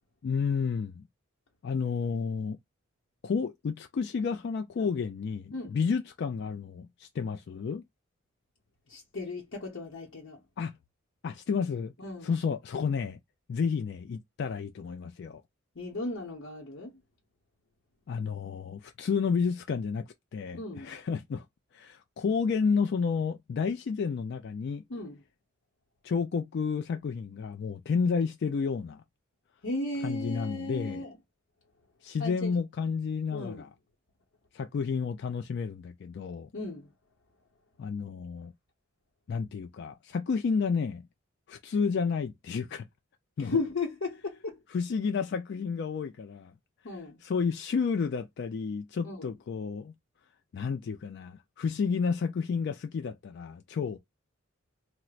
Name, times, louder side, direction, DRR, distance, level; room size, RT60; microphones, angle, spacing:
voice 1, 0.2-1.1 1.6-2.6 3.2-7.8 10.6-10.8 11.2-11.9 12.2-13.2 13.5-15.4 18.1-20.0 20.3-21.4 21.7-24.8 26.0-29.0 30.0-31.0 32.0-33.7 34.5-36.5 37.8-38.5 39.3-41.0 41.5-42.9 43.4-43.6 44.7-46.5 47.2-49.9 50.5-54.0, left 5 dB, 55° left, 0.3 m, -31 dB
voice 2, 8.9-10.4 12.0-12.3 15.7-17.0 20.5-21.0 24.9-25.2 29.6-31.2 32.2-32.5 33.3-33.7 36.5-36.9 43.4-44.6 46.8-47.2 49.0-49.3, left 3 dB, 70° left, 0.8 m, -35 dB
4.3 x 2.0 x 2.4 m
head